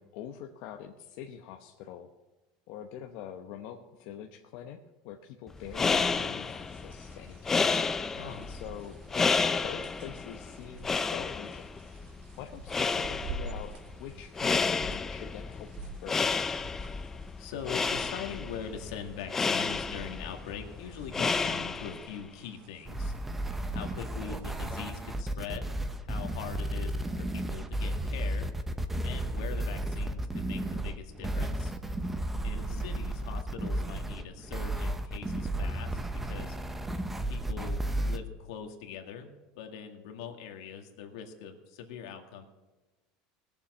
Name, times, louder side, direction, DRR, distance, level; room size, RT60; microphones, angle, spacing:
voice 1, 0.0-2.1 2.7-4.8 5.0-9.4 9.6-12.1 12.4-13.7 14.0-16.6 32.5-32.9, left 9 dB, 60° left, 4 dB, 0.9 m, -45 dB
sound 1, 5.5-22.2, left 4 dB, 15° left, 0.4 m, -31 dB
sound 2, 5.6-24.7, right 3 dB, 60° right, 1.8 m, -49 dB
voice 2, 8.1-8.5 17.4-23.1 23.7-25.8 26.0-28.5 29.0-31.7 32.4-36.6 37.3-42.4, left 7 dB, 80° left, 4 dB, 2.0 m, -42 dB
sound 3, 22.9-38.2, right 1 dB, 10° right, 0.8 m, -33 dB
19.5 x 7.2 x 6.1 m, 1.2 s
supercardioid pair, 155°, 3 cm